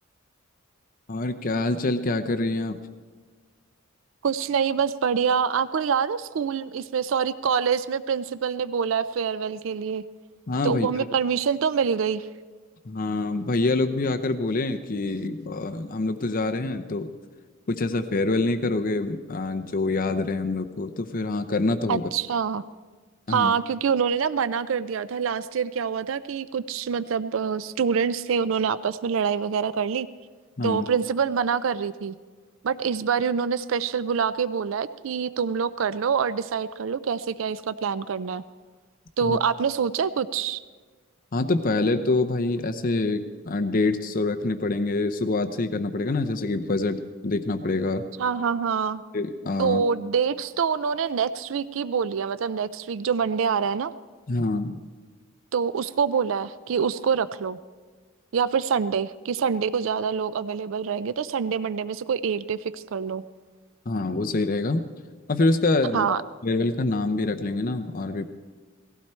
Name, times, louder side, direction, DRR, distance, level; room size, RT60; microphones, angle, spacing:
voice 1, 1.1-2.8 10.5-10.9 12.9-17.1 17.7-22.1 23.3-23.5 30.6-30.9 39.2-39.4 41.3-48.1 49.1-49.8 54.3-54.8 63.9-64.9 65.3-66.1 66.4-68.3, left 2 dB, 40° left, 7 dB, 0.6 m, -26 dB
voice 2, 4.2-10.0 10.6-12.3 21.9-22.6 23.3-30.1 30.6-32.2 32.6-38.4 39.2-40.6 48.2-49.0 49.6-53.9 55.5-57.6 58.3-63.2 65.9-66.2, right 6 dB, 65° right, 15 dB, 0.4 m, -25 dB
18.5 x 15.5 x 4.4 m, 1.4 s
head